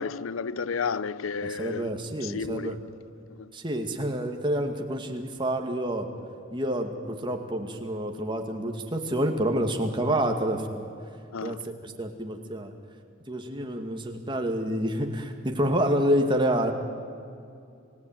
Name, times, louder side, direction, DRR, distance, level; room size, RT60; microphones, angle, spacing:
voice 1, 0.0-2.9 3.3-3.5 11.3-11.6, left 5 dB, 90° left, 0.6 m, -32 dB
voice 2, 1.4-2.8 3.5-6.1 6.5-10.9 11.4-12.7 13.3-16.7, right 1 dB, 25° right, 2.3 m, -28 dB
30.0 x 18.0 x 9.4 m
head